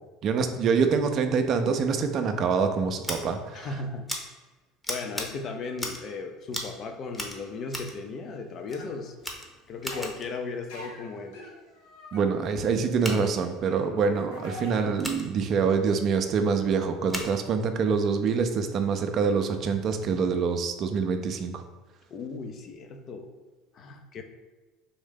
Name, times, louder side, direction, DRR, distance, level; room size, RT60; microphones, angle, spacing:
voice 1, 0.2-3.7 12.1-21.6, right 5 dB, 50° right, 7 dB, 0.5 m, -25 dB
Scissors, 3.0-3.2 4.1-4.2 4.8-5.3 5.7-6.1 6.5-6.8 7.1-8.0 8.7-8.8 9.2-10.3 13.0-13.2 15.0-15.2 17.1-17.3, left 1 dB, 10° left, 0.8 m, -35 dB
voice 2, 3.5-4.1 4.9-9.2 9.7-11.5 13.7-13.9 22.1-23.3 23.7-24.2, left 4 dB, 50° left, 5 dB, 0.5 m, -36 dB
sound 1, 8.7-8.9 9.8-10.1 10.7-15.3 15.5-15.9 18.2-18.3, equal, 80° left, 0.8 m, -44 dB
3.7 x 2.6 x 3.7 m, 1.2 s
hypercardioid pair, 80°, 0 cm